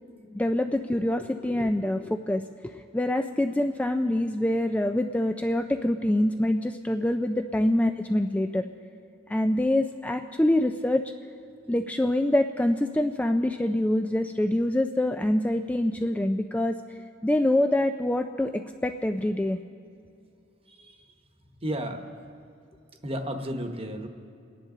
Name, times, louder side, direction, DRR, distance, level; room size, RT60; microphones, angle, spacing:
voice 1, 0.3-8.6 9.3-11.0 11.7-16.8 17.2-19.6, left 1 dB, 5° left, 5 dB, 0.3 m, -25 dB
voice 2, 20.7-21.1 21.6-22.1 23.0-24.1, equal, 30° right, 5 dB, 1.1 m, -33 dB
29.5 x 10.0 x 3.8 m, 2.5 s
head